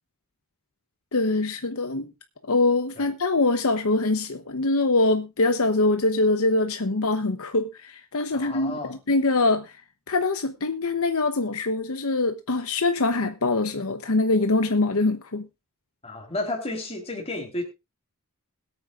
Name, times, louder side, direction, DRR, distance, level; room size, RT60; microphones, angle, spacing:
voice 1, 1.1-2.1 2.5-9.8 10.1-15.5, left 2 dB, 65° left, 0.9 m, -23 dB
voice 2, 8.3-9.0 16.0-17.6, left 2 dB, 30° left, 3.6 m, -32 dB
21.5 x 8.8 x 2.5 m
head